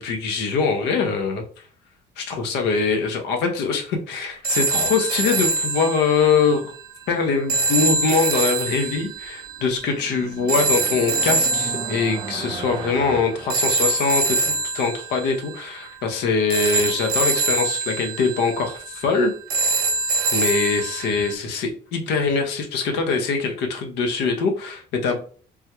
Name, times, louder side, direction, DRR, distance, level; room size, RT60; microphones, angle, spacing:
voice 1, 0.0-1.4 2.2-6.7 7.1-19.3 20.3-25.2, left 5 dB, 85° left, 4 dB, 0.7 m, -23 dB
sound 1, 4.4-21.3, right 3 dB, 65° right, 0.7 m, -25 dB
sound 2, 9.2-14.4, right 4 dB, 30° right, 0.4 m, -36 dB
3.4 x 2.2 x 2.9 m, 0.43 s
cardioid pair, 110°, 17 cm